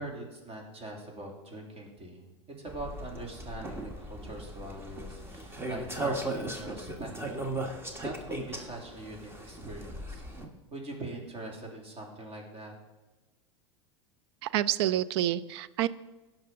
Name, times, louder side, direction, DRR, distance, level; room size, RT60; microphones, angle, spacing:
voice 1, 0.0-2.3 2.6-7.2 8.0-10.2 10.7-12.7, right 2 dB, 40° right, 0 dB, 3.1 m, -42 dB
sound 1, 2.7-10.5, right 1 dB, 15° right, 1.6 m, -37 dB
voice 2, 14.4-15.9, right 12 dB, 60° right, 18 dB, 0.5 m, -28 dB
16.5 x 5.9 x 3.8 m, 1.1 s
hypercardioid pair, 90°, 15 cm